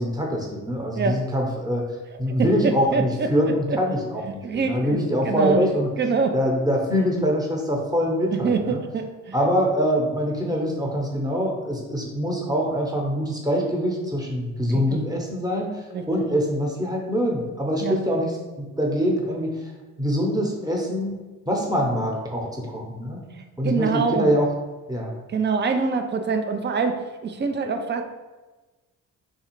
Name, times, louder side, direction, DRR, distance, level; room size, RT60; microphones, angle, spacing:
voice 1, 0.0-1.8 2.2-5.9 6.3-8.8 9.3-19.6 20.0-21.2 21.5-23.2 23.6-24.5 24.9-25.1, equal, 10° right, -1 dB, 0.8 m, -24 dB
voice 2, 1.0-1.3 2.3-2.5 2.9-3.3 3.7-3.8 4.3-5.6 6.0-6.4 8.3-9.4 14.7-15.0 15.9-16.2 17.8-18.0 23.4-24.4 25.3-28.0, right 5 dB, 30° right, 6 dB, 0.3 m, -25 dB
3.3 x 2.3 x 3.1 m, 1.2 s
hypercardioid pair, 45°, 42 cm